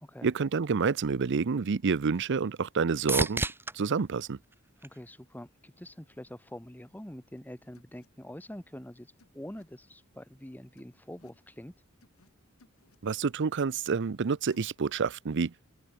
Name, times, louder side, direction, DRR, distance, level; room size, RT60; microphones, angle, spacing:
voice 1, 0.2-3.4 3.7-4.4 13.0-15.5, right 5 dB, 55° right, 0.5 m, -28 dB
sound 1, 2.0-5.6 6.1-6.7 14.5-14.6, right 2 dB, 10° right, 1.4 m, -37 dB
voice 2, 4.8-11.7, left 1 dB, 10° left, 1.6 m, -45 dB
sound 2, 7.4-7.5 7.7-8.1 9.2-9.6 10.8-11.4 12.0-12.3 12.6-13.0 14.5-14.7, left 2 dB, 85° left, 5.5 m, -63 dB
open air
head